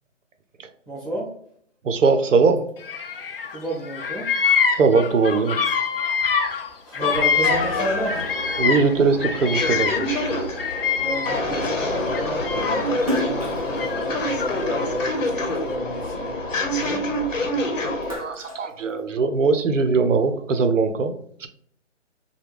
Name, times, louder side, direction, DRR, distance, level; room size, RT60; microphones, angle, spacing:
voice 1, 0.9-1.3 3.5-4.3 6.8-8.4 11.0-16.4 16.7-17.0, right 1 dB, 15° left, -13 dB, 0.9 m, -31 dB
voice 2, 1.8-2.7 4.7-5.6 8.6-10.1 10.9-11.0 18.2-21.5, right 4 dB, 80° right, 8 dB, 0.6 m, -20 dB
Bird vocalization bird call bird song, 2.8-3.6 3.8-8.9 9.2-11.6 12.1-13.0 13.8-14.9, left 6 dB, 50° left, 0.5 m, -25 dB
sound 1, 7.0-18.2, left 1 dB, 80° left, 0.9 m, -27 dB
Splash splatter, 13.0-15.5 16.0-17.4 17.8-19.5, equal, 30° right, 0.5 m, -33 dB
3.0 x 2.2 x 3.4 m, 0.64 s
hypercardioid pair, 160°, 38 cm